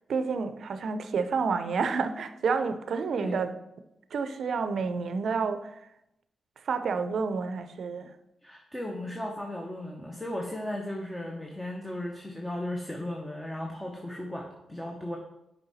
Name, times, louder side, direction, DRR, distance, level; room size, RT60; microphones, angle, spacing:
voice 1, 0.1-3.5 4.1-5.7 6.7-8.1, right 5 dB, 70° right, 0.5 m, -29 dB
voice 2, 8.4-15.2, left 1 dB, 10° left, 0.9 m, -36 dB
6.8 x 4.5 x 4.1 m
cardioid pair, 85°, 0 cm